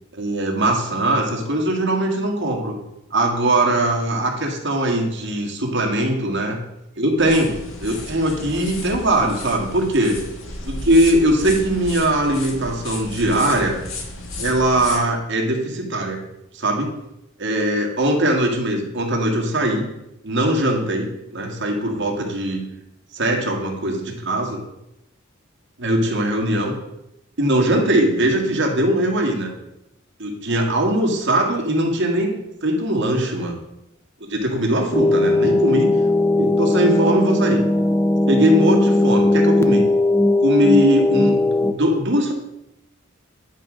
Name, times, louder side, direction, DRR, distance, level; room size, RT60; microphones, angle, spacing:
voice 1, 0.1-2.7 3.1-6.6 6.9-7.5 7.8-10.2 10.6-13.8 14.4-16.2 16.5-16.9 17.4-19.9 20.2-22.6 23.1-24.6 25.8-26.8 27.4-29.5 30.2-33.6 34.2-35.9 36.4-37.6 38.3-39.9 40.4-42.3, right 1 dB, 60° right, 1 dB, 1.8 m, -20 dB
sound 1, 7.2-15.0, left 2 dB, 80° left, 1.6 m, -33 dB
sound 2, 34.9-41.7, left 2 dB, 15° left, 0.6 m, -18 dB
10.5 x 3.8 x 6.2 m, 0.88 s
head